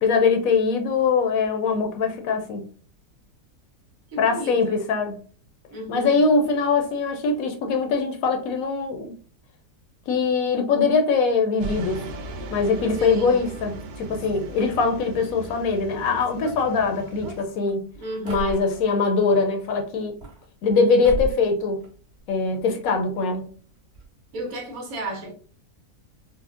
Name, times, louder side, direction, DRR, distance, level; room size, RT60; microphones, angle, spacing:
voice 1, 0.0-2.6 4.2-5.1 5.9-9.1 10.1-12.0 12.5-17.9 18.2-20.2 20.6-21.8 22.3-23.5, left 4 dB, 75° left, 1.0 m, -22 dB
voice 2, 4.1-4.8 5.7-6.2 13.0-13.4 18.0-18.7 24.3-25.3, right 1 dB, 65° right, 1.3 m, -32 dB
sound 1, 11.6-17.4, right 2 dB, 85° right, 1.1 m, -38 dB
sound 2, 16.2-19.1 20.0-20.8 21.0-21.5 21.8-22.6 22.9-23.0 23.2-23.3 23.9-24.1 24.3-24.5, right 3 dB, 30° right, 1.2 m, -36 dB
4.1 x 2.0 x 2.4 m
omnidirectional pair, 1.6 m